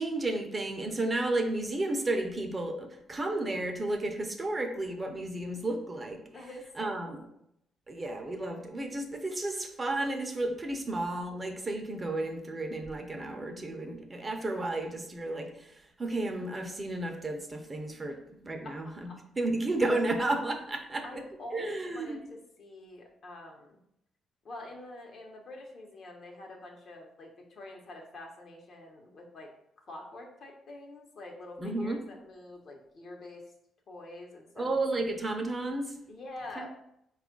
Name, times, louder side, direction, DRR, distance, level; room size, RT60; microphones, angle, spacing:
voice 1, 0.0-6.2 6.8-7.2 7.9-18.2 18.4-19.1 19.4-21.0 21.5-22.2 31.6-32.0 34.6-36.0 36.6-36.7, right 2 dB, 25° right, 4 dB, 0.6 m, -32 dB
voice 2, 6.3-7.3 18.6-19.2 21.0-23.8 24.4-29.5 29.9-33.4 33.9-34.8 36.1-36.7, left 2 dB, 55° left, 1 dB, 0.9 m, -46 dB
4.3 x 2.4 x 3.7 m, 0.78 s
cardioid pair, 90°, 0 cm